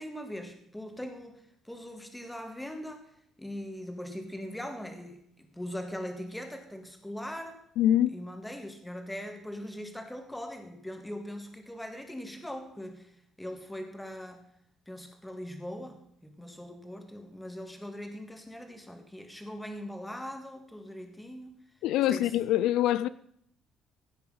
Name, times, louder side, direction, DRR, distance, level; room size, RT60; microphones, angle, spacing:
voice 1, 0.0-1.4 1.7-3.0 3.4-7.6 8.1-13.1 13.4-14.4 14.9-21.6 22.1-22.3, equal, 5° left, 1.8 m, -41 dB
voice 2, 7.8-8.1 21.8-23.1, left 12 dB, 80° left, 0.4 m, -24 dB
16.0 x 8.6 x 5.6 m
cardioid pair, 160°, 0 cm